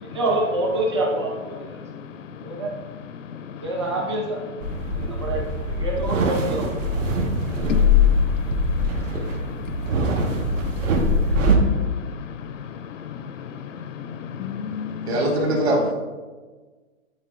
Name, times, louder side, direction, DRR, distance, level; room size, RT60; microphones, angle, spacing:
voice 1, 0.0-1.8 2.4-2.7 3.6-4.4 4.9-5.4 5.8-6.7, right 2 dB, 20° right, -1 dB, 0.6 m, -26 dB
sound 1, 4.6-11.6, left 2 dB, 65° right, 1.4 m, -22 dB
voice 2, 8.5-9.0 9.3-9.4 10.2-10.4 11.8-11.9 14.0-15.1, left 7 dB, 65° left, 12 dB, 0.5 m, -32 dB
voice 3, 15.1-15.9, right 1 dB, 50° right, -2 dB, 1.7 m, -21 dB
10.5 x 4.0 x 2.5 m, 1.3 s
hypercardioid pair, 180°, 41 cm